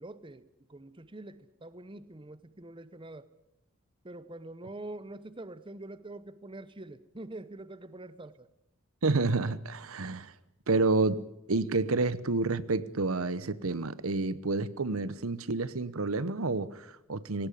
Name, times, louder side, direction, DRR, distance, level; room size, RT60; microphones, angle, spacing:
voice 1, 0.0-3.3 4.0-8.5, right 2 dB, 25° right, 0.8 m, -45 dB
voice 2, 9.0-10.3 10.7-17.5, right 3 dB, 80° right, 1.0 m, -29 dB
19.5 x 17.5 x 10.0 m
head